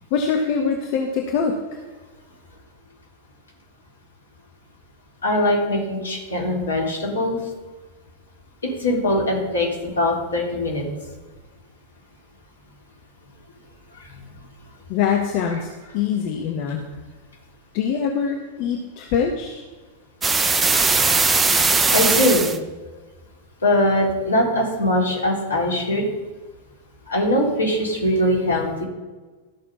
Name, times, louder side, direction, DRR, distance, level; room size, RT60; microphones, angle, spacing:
voice 1, 0.1-1.6 14.9-15.7 15.9-16.8 17.7-19.6, left 6 dB, 45° left, 3 dB, 1.3 m, -23 dB
voice 2, 5.2-7.4 8.8-9.7 10.0-10.8 21.9-22.5 23.6-26.1 27.1-28.8, left 1 dB, 70° left, -2 dB, 4.0 m, -21 dB
sound 1, 20.2-22.6, right 4 dB, 15° right, 0.9 m, -19 dB
13.5 x 6.7 x 5.7 m, 1.3 s
figure-of-eight pair, 90°, 0 cm